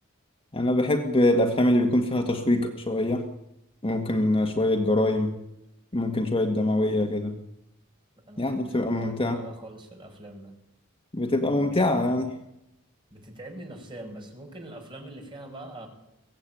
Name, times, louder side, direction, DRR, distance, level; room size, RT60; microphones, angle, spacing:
voice 1, 0.5-3.3 3.8-5.3 5.9-7.4 8.4-9.4 11.1-12.3, left 1 dB, 25° left, 3 dB, 1.7 m, -24 dB
voice 2, 8.3-10.5 11.5-12.3 13.1-15.9, right 1 dB, 25° right, 2 dB, 5.7 m, -43 dB
22.5 x 17.0 x 9.2 m, 0.87 s
head